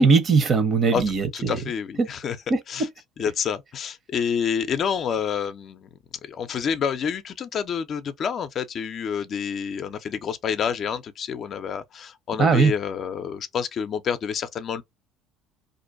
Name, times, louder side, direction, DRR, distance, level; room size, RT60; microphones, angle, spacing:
voice 1, 0.0-1.6 2.0-2.1 2.5-2.6 12.4-12.7, right 4 dB, 45° right, 0.8 m, -19 dB
voice 2, 1.3-2.4 2.7-2.9 3.2-5.9 6.2-14.8, left 7 dB, 50° left, 0.4 m, -28 dB
2.5 x 2.2 x 2.5 m
supercardioid pair, 75°, 0 cm